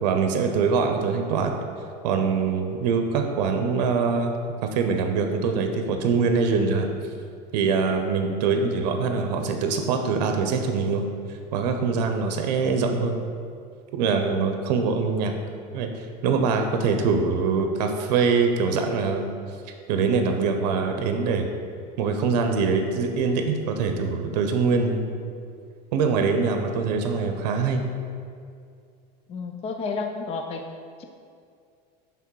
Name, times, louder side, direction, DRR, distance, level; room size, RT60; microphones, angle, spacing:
voice 1, 0.0-1.5 2.0-6.9 7.5-11.1 11.5-13.2 13.9-15.3 15.7-19.3 19.9-21.5 22.0-25.2 25.9-27.8, right 5 dB, 80° right, 5 dB, 0.6 m, -23 dB
voice 2, 29.3-31.0, left 4 dB, 30° left, 4 dB, 0.4 m, -32 dB
5.8 x 3.5 x 4.6 m, 2.3 s
supercardioid pair, 115°, 21 cm